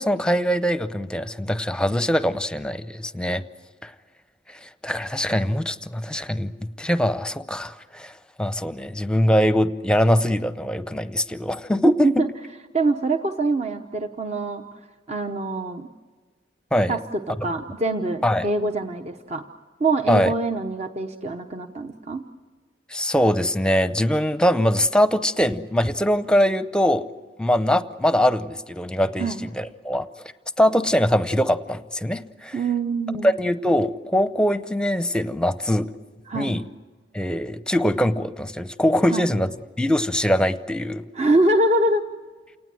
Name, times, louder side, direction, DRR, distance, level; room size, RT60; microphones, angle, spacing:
voice 1, 0.0-3.4 3.8-3.9 4.5-8.1 8.4-12.1 16.7-16.9 18.2-18.5 20.1-20.3 22.9-27.0 27.4-30.1 30.6-32.6 33.2-35.9 36.3-36.6 37.1-39.5 39.8-41.0, equal, 5° left, 12 dB, 0.7 m, -22 dB
voice 2, 12.7-14.8 15.1-15.9 16.9-19.4 19.8-22.2 29.2-29.4 32.5-33.3 36.3-36.6 39.1-39.3 41.1-42.1, right 2 dB, 40° right, 6 dB, 0.9 m, -24 dB
28.5 x 19.0 x 7.7 m, 1.4 s
head